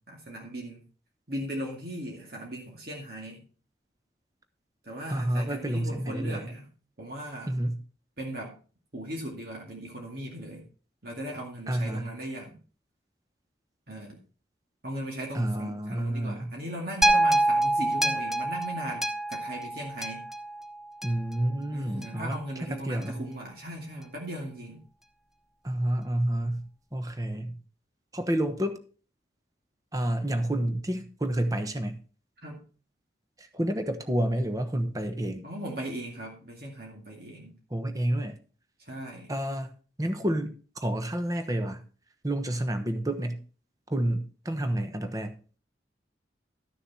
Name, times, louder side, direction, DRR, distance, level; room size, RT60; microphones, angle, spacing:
voice 1, 0.1-0.8 1.3-3.4 4.8-6.7 7.0-7.5 8.2-8.6 8.9-10.7 11.0-12.6 13.9-14.2 14.8-20.3 21.7-24.8 32.4-32.7 35.4-37.5 38.8-39.3, right 1 dB, 55° right, 2.2 m, -38 dB
voice 2, 5.1-6.5 7.5-7.8 11.7-12.1 15.3-16.5 21.0-22.4 22.7-23.2 25.6-27.6 28.1-28.8 29.9-32.0 33.4-35.5 37.7-38.3 39.3-39.7 40.0-41.8 42.2-43.4 43.9-45.4, right 1 dB, 20° right, 1.0 m, -29 dB
sound 1, 17.0-21.3 22.0-22.1, right 1 dB, ahead, 0.7 m, -26 dB
13.0 x 6.6 x 4.2 m
head